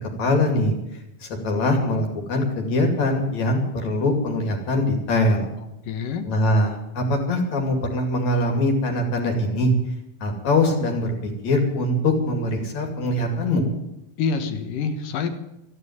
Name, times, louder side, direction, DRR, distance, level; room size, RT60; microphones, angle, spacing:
voice 1, 0.0-0.7 1.2-5.5 6.3-9.7 10.2-13.7, left 1 dB, 60° left, 3 dB, 3.8 m, -22 dB
voice 2, 5.8-6.3 14.2-15.3, left 5 dB, 85° left, 8 dB, 3.1 m, -26 dB
13.5 x 11.0 x 9.6 m, 0.88 s
omnidirectional pair, 3.7 m